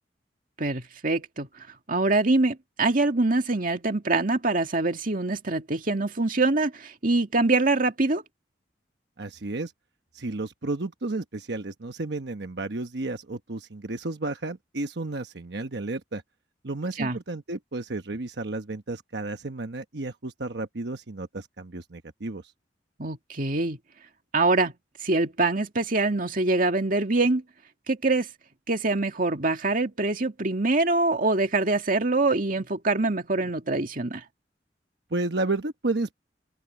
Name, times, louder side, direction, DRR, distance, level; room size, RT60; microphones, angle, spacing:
voice 1, 0.6-8.2 17.0-17.2 23.0-23.8 24.3-24.7 25.0-27.4 27.9-28.3 28.7-34.2, right 2 dB, 50° right, 2.1 m, -24 dB
voice 2, 9.2-9.7 10.1-16.2 16.6-22.5 35.1-36.1, right 2 dB, 65° right, 1.1 m, -32 dB
open air
head